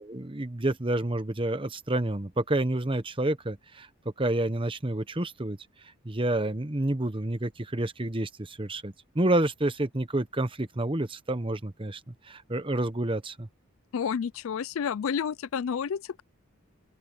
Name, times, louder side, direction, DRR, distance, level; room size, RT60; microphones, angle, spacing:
voice 1, 0.0-13.5, right 1 dB, 25° right, 1.0 m, -29 dB
voice 2, 13.9-16.2, left 7 dB, 65° left, 0.4 m, -30 dB
open air
head